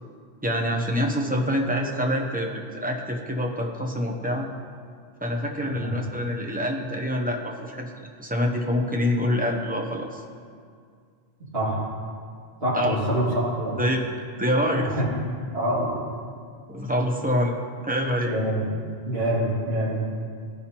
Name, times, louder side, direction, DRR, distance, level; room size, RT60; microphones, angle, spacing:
voice 1, 0.4-4.5 5.2-7.9 8.2-10.2 12.7-13.0 13.8-14.0 14.4-15.0 16.7-17.5 17.8-18.3, equal, 10° right, 1 dB, 0.6 m, -26 dB
voice 2, 12.6-13.8 14.7-15.1 15.5-15.9 18.2-18.7 19.0-20.0, right 1 dB, 65° right, -8 dB, 2.6 m, -25 dB
14.5 x 5.5 x 2.9 m, 2.1 s
omnidirectional pair, 1.1 m